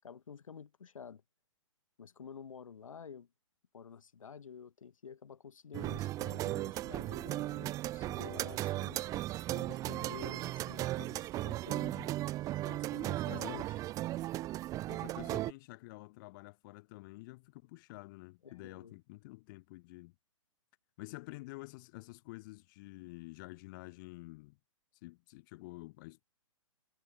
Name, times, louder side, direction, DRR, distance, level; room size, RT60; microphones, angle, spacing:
voice 1, 0.0-1.2 2.0-3.3 3.7-9.1 9.5-11.8 12.6-13.7 18.4-18.9, left 6 dB, 80° left, 6.8 m, -50 dB
sound 1, 5.7-15.5, right 15 dB, 20° right, 0.8 m, -36 dB
voice 2, 11.8-12.1 13.3-13.7 14.9-20.1 21.0-24.6 24.9-26.2, left 22 dB, 40° left, 3.2 m, -49 dB
hypercardioid pair, 140°, 17 cm